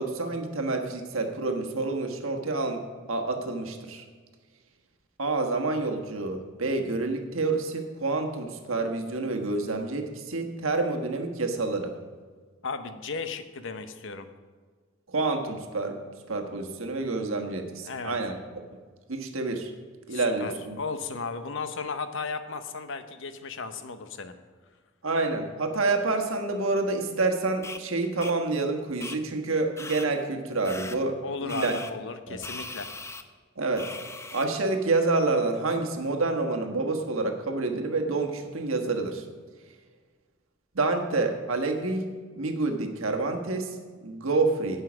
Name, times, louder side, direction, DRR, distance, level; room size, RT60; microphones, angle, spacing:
voice 1, 0.0-4.0 5.2-11.9 15.1-16.0 16.3-18.4 19.1-19.7 20.1-20.8 25.0-31.7 32.3-32.4 33.6-33.9 34.3-39.2 40.7-42.1 42.3-44.8, right 3 dB, 75° right, 4 dB, 1.4 m, -28 dB
voice 2, 12.6-14.3 17.8-18.2 20.1-24.3 31.2-32.9, left 4 dB, 65° left, 10 dB, 0.9 m, -35 dB
sound 1, 27.6-27.8 28.2-28.3 29.0-29.2 29.8-30.1 30.6-31.0 31.5-31.9 32.4-33.2 33.8-34.5, left 3 dB, 15° left, 0.6 m, -39 dB
17.0 x 5.6 x 6.2 m, 1.5 s
head